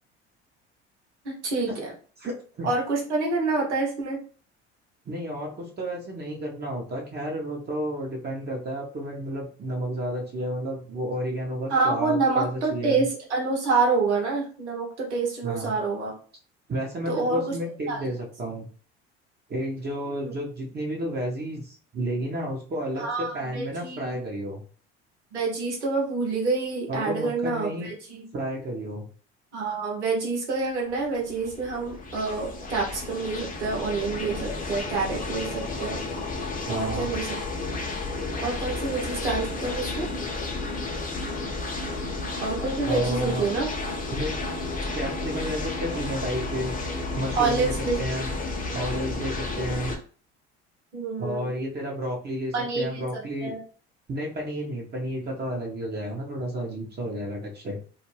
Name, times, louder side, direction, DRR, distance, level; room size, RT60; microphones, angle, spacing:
voice 1, 1.2-1.9 2.6-4.2 11.7-16.1 17.1-17.5 17.9-18.1 20.2-20.3 23.0-24.2 25.3-28.2 29.5-36.0 36.7-37.6 38.4-40.1 42.4-43.7 47.3-48.0 50.9-51.5 52.5-53.6, right 3 dB, 90° right, -1 dB, 1.0 m, -27 dB
voice 2, 2.2-2.7 5.1-13.1 15.4-15.7 16.7-18.7 19.5-24.6 26.9-27.9 28.3-29.1 36.7-37.1 42.8-43.5 44.1-44.4 44.9-46.7 47.1-48.3 48.7-49.9 51.2-53.5 54.1-57.8, right 1 dB, 30° right, -1 dB, 0.8 m, -31 dB
sound 1, 30.9-50.0, left 3 dB, 25° left, 0.7 m, -32 dB
2.4 x 2.1 x 3.2 m, 0.41 s
hypercardioid pair, 65°, 33 cm